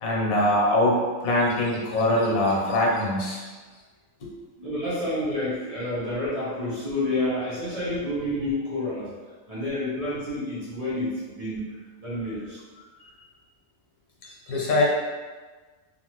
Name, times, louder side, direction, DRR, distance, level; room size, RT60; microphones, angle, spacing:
voice 1, 0.0-3.4 4.2-4.3 14.5-14.8, left 1 dB, 90° left, -3 dB, 1.2 m, -23 dB
voice 2, 4.6-9.1 9.5-11.7 12.0-12.6, left 1 dB, 35° right, -10 dB, 0.6 m, -29 dB
2.9 x 2.4 x 2.9 m, 1.4 s
omnidirectional pair, 1.4 m